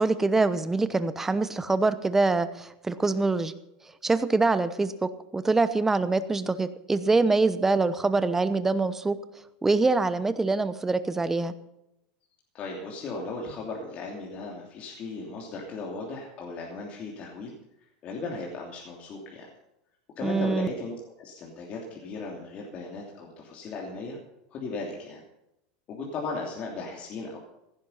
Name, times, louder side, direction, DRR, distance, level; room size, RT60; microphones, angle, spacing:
voice 1, 0.0-3.6 4.0-9.2 9.6-11.5 20.2-20.7, right 3 dB, 10° right, 13 dB, 0.9 m, -24 dB
voice 2, 12.5-17.5 18.0-19.5 20.2-24.2 24.5-25.2 25.9-27.4, left 3 dB, 35° left, -1 dB, 3.0 m, -36 dB
16.0 x 10.5 x 5.6 m, 0.85 s
supercardioid pair, 145°, 4 cm